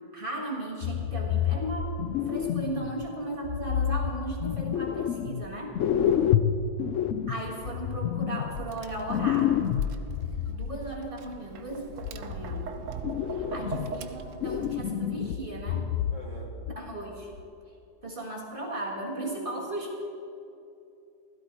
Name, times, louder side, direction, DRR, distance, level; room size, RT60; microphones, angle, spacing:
voice 1, 0.1-2.0 2.3-5.8 7.3-9.6 10.5-12.7 13.5-15.9 16.7-17.4 18.0-20.0, right 1 dB, 30° right, -2 dB, 1.9 m, -36 dB
sound 1, 0.8-3.1 3.4-5.5 5.7-10.7 11.7-12.7 13.0-14.1 14.4-16.4 16.6-16.8 17.4-17.5, left 9 dB, 80° left, 0.6 m, -29 dB
voice 2, 6.0-6.4 13.4-13.7 16.1-16.5, left 1 dB, 20° left, -3 dB, 1.5 m, -44 dB
Tap, 8.5-14.7, right 5 dB, 60° right, 0.9 m, -41 dB
16.0 x 13.0 x 4.5 m, 2.8 s
omnidirectional pair, 1.9 m